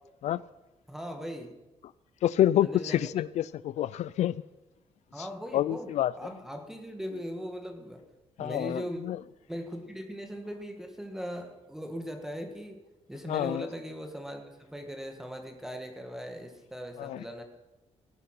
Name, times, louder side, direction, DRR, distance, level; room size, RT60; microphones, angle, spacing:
voice 1, 0.9-1.5 2.6-3.1 5.1-8.0 8.4-9.0 9.5-12.8 13.1-17.4, equal, 5° right, 4 dB, 1.7 m, -39 dB
voice 2, 2.2-4.3 5.5-6.1 8.4-9.2 13.3-13.6 17.0-17.2, left 12 dB, 75° left, 19 dB, 0.4 m, -27 dB
19.0 x 11.5 x 5.9 m, 1.0 s
wide cardioid pair, 160°, 12 cm